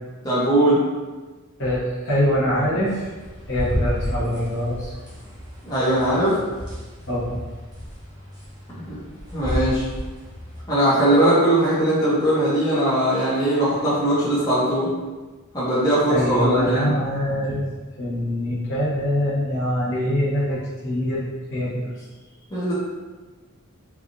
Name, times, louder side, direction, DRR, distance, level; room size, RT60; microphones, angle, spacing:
voice 1, 0.2-0.8 5.6-6.4 8.7-9.0 9.3-9.8 10.7-14.9 15.5-16.9 22.5-22.7, right 1 dB, 15° left, -11 dB, 0.8 m, -20 dB
voice 2, 1.6-3.1 3.5-4.9 7.1-7.4 16.1-17.6 18.0-21.2 21.5-21.9, equal, 55° left, -8 dB, 1.0 m, -23 dB
sound 1, 2.9-10.6, equal, 20° right, 0.7 m, -32 dB
3.3 x 2.4 x 2.5 m, 1.3 s
head